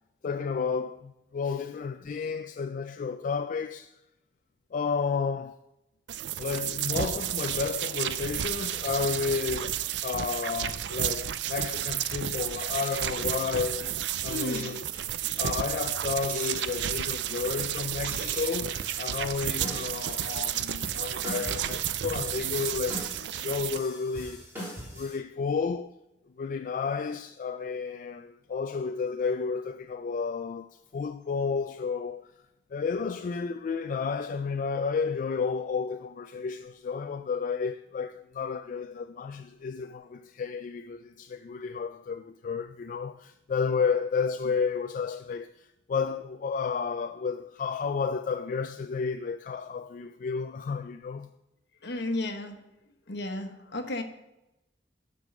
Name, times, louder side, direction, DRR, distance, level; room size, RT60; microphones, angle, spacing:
voice 1, 0.2-3.9 4.7-5.6 6.4-14.0 14.2-14.8 15.4-24.4 24.9-26.0 26.4-32.3 32.7-51.3, left 5 dB, 45° left, 0.3 m, -32 dB
sound 1, 6.1-23.8, right 11 dB, 70° right, 0.4 m, -32 dB
sound 2, 12.7-19.2, right 2 dB, 55° right, 2.2 m, -46 dB
voice 2, 14.3-14.8 51.8-52.6 53.1-54.0, left 1 dB, 65° left, 1.2 m, -33 dB
sound 3, 18.8-25.2, equal, 15° right, 3.4 m, -42 dB
9.2 x 5.3 x 6.4 m
head